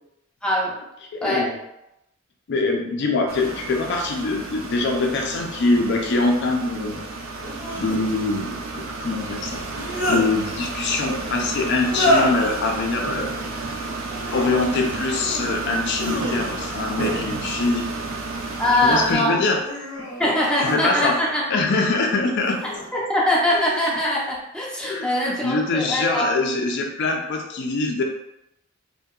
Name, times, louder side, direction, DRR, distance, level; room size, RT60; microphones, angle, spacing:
voice 1, 0.4-0.8 1.2-1.5 18.6-19.4 20.2-21.4 22.9-26.3, left 1 dB, 5° left, -5 dB, 0.5 m, -22 dB
voice 2, 1.1-1.5 2.5-7.0 7.7-13.3 14.3-17.9 18.8-19.6 20.6-21.2 21.5-22.6 24.8-28.0, left 3 dB, 60° left, 2 dB, 0.4 m, -24 dB
sound 1, 3.3-19.2, right 3 dB, 85° right, 0.4 m, -32 dB
sound 2, 5.0-5.1 7.4-8.0 9.5-10.3 11.8-12.5 14.0-14.5 15.0-15.5 15.9-16.8 18.0-18.7 19.3-21.3 22.4-22.9 23.5-24.0, left 1 dB, 85° left, 0.7 m, -27 dB
2.7 x 2.1 x 2.3 m, 0.84 s
head